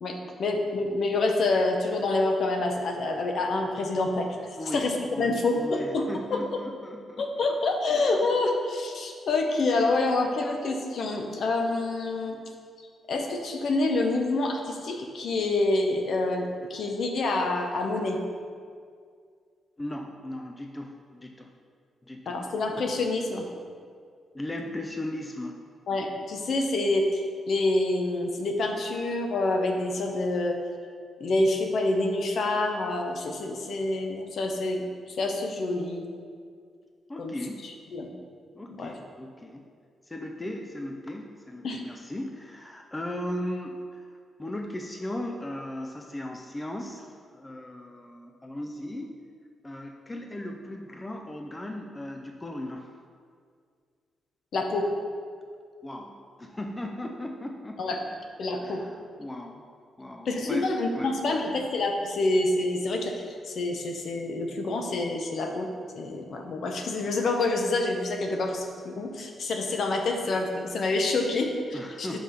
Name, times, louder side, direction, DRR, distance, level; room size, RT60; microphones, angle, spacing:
voice 1, 0.0-4.3 4.7-6.4 7.2-12.4 13.1-18.2 22.3-23.4 25.9-30.6 31.2-36.1 37.2-37.3 37.9-38.1 38.7-38.9 41.6-41.8 54.5-54.9 57.8-58.0 58.4-58.8 60.2-72.1, left 2 dB, 55° left, 3 dB, 0.8 m, -27 dB
voice 2, 4.6-7.3 19.8-21.5 22.0-22.4 24.3-25.6 37.1-37.7 38.6-39.7 40.1-44.1 44.4-47.1 47.3-49.2 49.6-52.9 54.8-54.9 55.8-58.2 58.6-59.7 60.0-60.7 60.9-61.4 71.7-72.2, left 1 dB, 15° left, 2 dB, 0.4 m, -37 dB
5.6 x 4.8 x 5.8 m, 2.1 s
cardioid pair, 135°, 0 cm